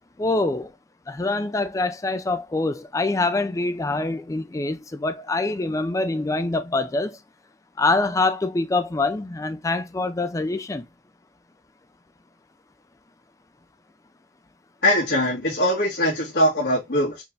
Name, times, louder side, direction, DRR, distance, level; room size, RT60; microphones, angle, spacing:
voice 1, 0.2-0.7 1.1-7.2 7.8-10.8, left 2 dB, 20° left, 0.4 m, -25 dB
voice 2, 14.8-17.2, equal, 85° left, 1.6 m, -21 dB
4.5 x 2.5 x 3.2 m
head